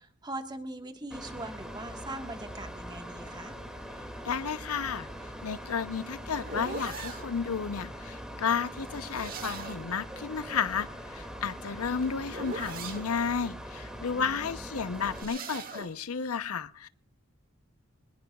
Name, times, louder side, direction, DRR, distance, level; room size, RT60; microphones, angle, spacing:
voice 1, 0.0-3.6 14.2-14.6, right 2 dB, 20° right, 6 dB, 1.4 m, -41 dB
Mechanical fan, 1.1-15.2, equal, 5° right, 2.2 m, -42 dB
voice 2, 4.2-5.1 5.4-16.9, left 6 dB, 90° left, 14 dB, 0.7 m, -32 dB
sound 1, 5.5-7.3 8.8-9.9 11.4-13.1 14.8-15.9, right 3 dB, 40° right, 2.1 m, -41 dB
23.5 x 20.0 x 2.3 m, 0.43 s
head